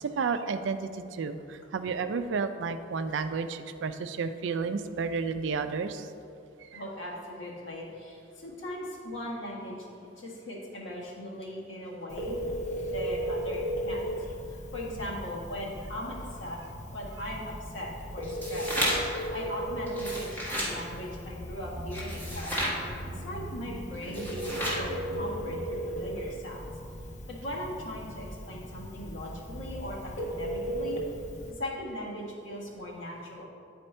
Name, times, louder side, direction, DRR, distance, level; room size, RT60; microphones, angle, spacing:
voice 1, 0.0-6.1 6.7-6.8, right 5 dB, 70° right, 10 dB, 0.4 m, -31 dB
voice 2, 6.7-9.9 10.2-12.4 12.9-14.1 14.5-16.6 16.9-18.7 19.1-22.5 23.1-26.7 27.3-31.0 31.5-33.5, left 1 dB, 70° left, -4 dB, 1.5 m, -39 dB
Telephone, 12.1-31.5, equal, 40° left, 0.6 m, -37 dB
sound 1, 18.2-19.2 19.9-20.7 21.9-22.8 24.0-24.9, equal, 10° left, 1.4 m, -32 dB
sound 2, 21.0-27.5 27.7-27.8, right 1 dB, 45° right, 0.8 m, -44 dB
9.1 x 4.3 x 4.3 m, 2.5 s
head